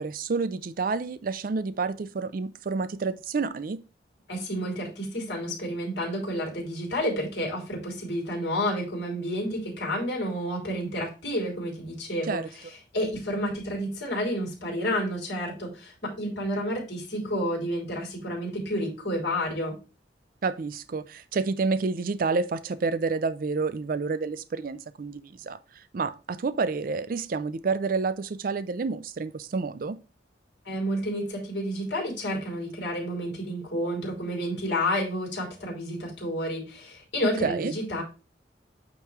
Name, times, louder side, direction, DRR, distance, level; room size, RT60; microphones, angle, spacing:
voice 1, 0.0-3.8 12.3-12.5 20.4-30.0 37.2-37.7, right 4 dB, 50° right, 0.4 m, -29 dB
voice 2, 4.3-12.4 12.9-19.8 30.6-38.0, equal, 70° left, 3.2 m, -30 dB
8.8 x 3.1 x 4.6 m
head